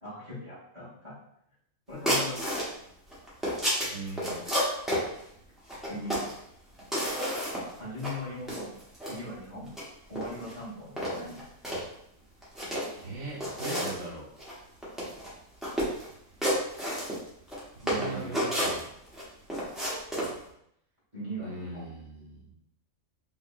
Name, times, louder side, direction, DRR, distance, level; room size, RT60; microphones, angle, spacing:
voice 1, 0.0-1.1 1.9-2.5 5.9-6.3 7.8-8.7 9.1-9.7 10.1-11.4 17.8-18.4 21.1-21.9, left 1 dB, 20° right, -10 dB, 1.7 m, -39 dB
sound 1, 2.1-2.7 3.1-5.0 5.7-6.4 6.8-7.7 8.0-8.1 8.5-9.2 9.7-9.8 10.2-10.5 11.0-11.8 12.4-13.0 13.4-14.0 14.4-14.5 14.8-15.3 15.6-16.1 16.4-17.6 17.9-19.2 19.5-20.3, equal, ahead, 1.1 m, -30 dB
voice 2, 3.9-4.4 13.0-14.3 17.9-18.8 21.4-22.6, right 3 dB, 70° right, -6 dB, 1.8 m, -40 dB
3.9 x 3.4 x 2.6 m, 0.73 s
omnidirectional pair, 1.4 m